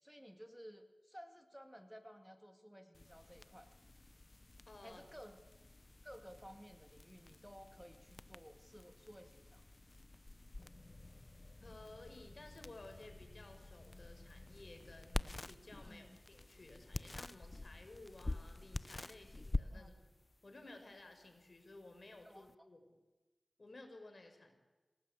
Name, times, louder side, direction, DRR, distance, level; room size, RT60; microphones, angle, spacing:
voice 1, 0.0-3.7 4.8-5.4 6.0-9.6 15.8-16.2 19.7-19.9 22.2-22.5, equal, 5° right, 6 dB, 2.4 m, -56 dB
sound 1, 2.9-22.5, left 2 dB, 40° left, 0.8 m, -48 dB
voice 2, 4.7-5.0 11.6-20.1 20.4-22.8 23.6-24.6, left 2 dB, 60° left, 5 dB, 5.6 m, -56 dB
28.0 x 18.5 x 8.4 m, 1.2 s
cardioid pair, 40°, 0 cm